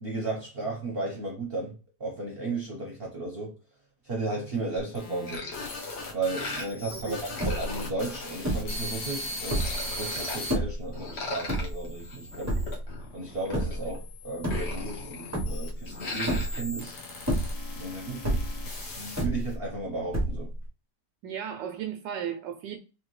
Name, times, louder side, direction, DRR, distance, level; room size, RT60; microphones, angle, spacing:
voice 1, 0.0-3.6 4.0-5.5 6.1-12.6 13.1-17.0 17.7-18.5 18.9-20.5, right 3 dB, 40° right, 0.9 m, -34 dB
sound 1, 4.8-10.5 11.2-12.7 13.5-19.5, left 1 dB, 65° left, 1.6 m, -40 dB
sound 2, 5.3-6.9 7.2-8.8 9.2-10.4 10.9-14.0 14.3-15.5 15.9-16.6, left 3 dB, 45° left, 0.9 m, -39 dB
sound 3, 7.4-7.8 8.4-8.8 9.4-9.9 10.5-10.9 11.5-12.1 12.5-12.9 13.5-13.9 14.3-15.0 15.3-15.8 16.3-16.8 17.2-17.8 18.2-18.7 19.2-19.8 20.1-20.7, right 1 dB, 15° right, 0.6 m, -29 dB
voice 2, 21.2-22.8, right 9 dB, 80° right, 1.2 m, -35 dB
3.5 x 3.3 x 3.1 m
omnidirectional pair, 1.9 m